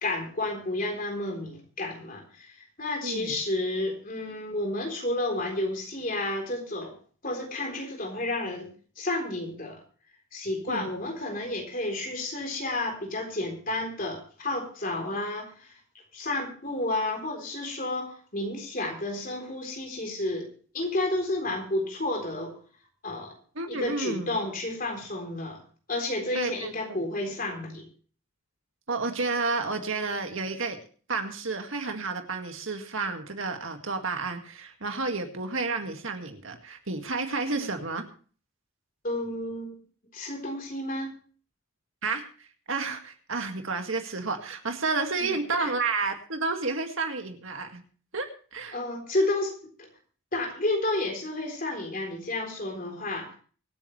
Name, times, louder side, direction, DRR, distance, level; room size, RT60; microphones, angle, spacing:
voice 1, 0.0-7.0 7.2-9.8 10.3-15.8 16.1-22.6 23.0-23.3 23.7-25.6 25.9-27.9 37.5-37.7 39.0-39.8 40.1-41.1 45.2-45.7 48.7-49.5 49.8-49.9 50.3-53.4, left 2 dB, 40° left, 3 dB, 3.8 m, -31 dB
voice 2, 3.0-3.4 10.7-10.9 23.6-24.4 26.3-27.0 28.9-30.8 31.1-38.1 42.0-47.8 48.1-48.8, right 3 dB, 65° right, 5 dB, 2.0 m, -31 dB
24.5 x 9.1 x 3.2 m, 0.41 s
head